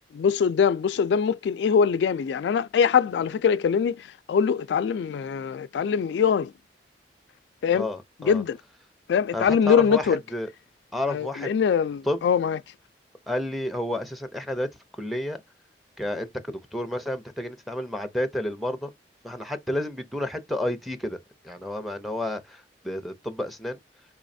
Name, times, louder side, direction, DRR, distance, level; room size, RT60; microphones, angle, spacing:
voice 1, 0.1-6.5 7.6-7.9 8.2-8.6 9.1-10.2 11.1-12.6, left 7 dB, 75° left, 0.3 m, -23 dB
voice 2, 7.7-8.4 9.3-10.5 10.9-11.5 12.1-12.2 13.3-14.7 15.0-15.4 16.0-18.9 19.2-21.2 21.4-23.8, left 1 dB, ahead, 0.6 m, -30 dB
4.7 x 3.1 x 2.6 m
head